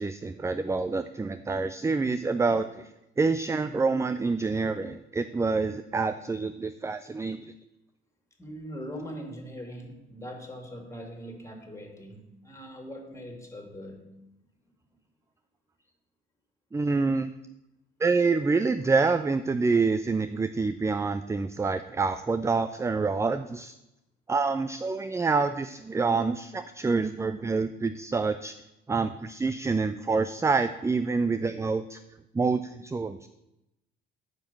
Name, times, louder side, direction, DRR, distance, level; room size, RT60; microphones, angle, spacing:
voice 1, 0.0-2.9 3.2-7.5 16.7-17.3 18.0-23.7 24.3-28.5 28.9-32.0 32.3-33.3, right 4 dB, 10° right, 12 dB, 0.4 m, -27 dB
voice 2, 8.4-14.1, equal, 10° left, 3 dB, 2.7 m, -41 dB
9.0 x 5.3 x 7.5 m, 0.90 s
figure-of-eight pair, 50°, 31 cm